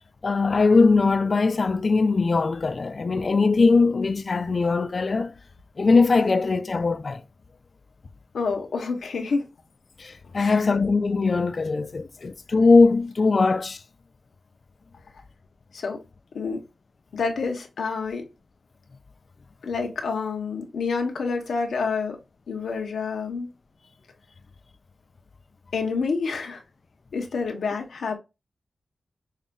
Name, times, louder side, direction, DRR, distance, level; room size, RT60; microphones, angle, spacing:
voice 1, 0.2-5.3 5.8-7.2 10.0-13.8, left 4 dB, 55° left, 0.3 m, -20 dB
voice 2, 8.3-9.5 10.3-10.6 15.7-16.0 16.3-16.6 17.1-18.2 19.6-22.2 22.5-23.5 25.7-26.6 27.1-28.2, left 4 dB, 90° left, 0.9 m, -28 dB
5.5 x 2.4 x 2.2 m
cardioid pair, 55°, 0 cm